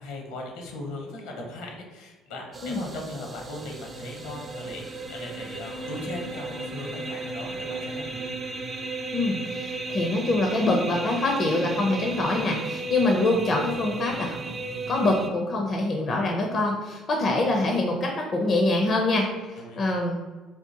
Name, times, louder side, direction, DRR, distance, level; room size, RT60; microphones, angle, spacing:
voice 1, 0.0-8.3 19.6-19.8, left 2 dB, 75° left, 1 dB, 0.8 m, -38 dB
sound 1, 2.5-15.3, right 3 dB, 35° right, 0.4 m, -34 dB
voice 2, 9.1-14.4 14.9-20.2, left 2 dB, 45° left, 1 dB, 0.5 m, -25 dB
3.5 x 2.3 x 2.8 m, 1.3 s
hypercardioid pair, 55°, 0 cm